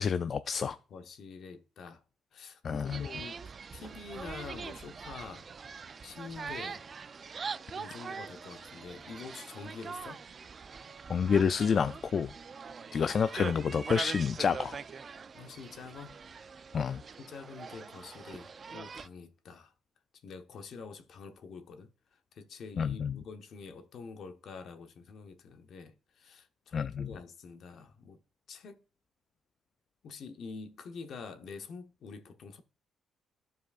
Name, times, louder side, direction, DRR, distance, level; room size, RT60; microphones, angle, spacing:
voice 1, 0.0-0.8 2.6-3.1 11.1-12.3 12.9-14.8 16.7-17.0 22.8-23.2 26.7-27.1, left 6 dB, 50° left, 0.3 m, -29 dB
voice 2, 0.9-2.0 2.3-3.4 3.7-5.5 6.0-6.8 7.7-10.2 15.3-16.2 17.2-19.7 20.2-21.9 22.3-28.2 28.5-28.8 30.0-32.6, left 5 dB, 65° left, 0.9 m, -46 dB
sound 1, 2.9-19.1, right 5 dB, 40° right, 0.4 m, -43 dB
14.0 x 4.7 x 2.4 m
cardioid pair, 90°, 0 cm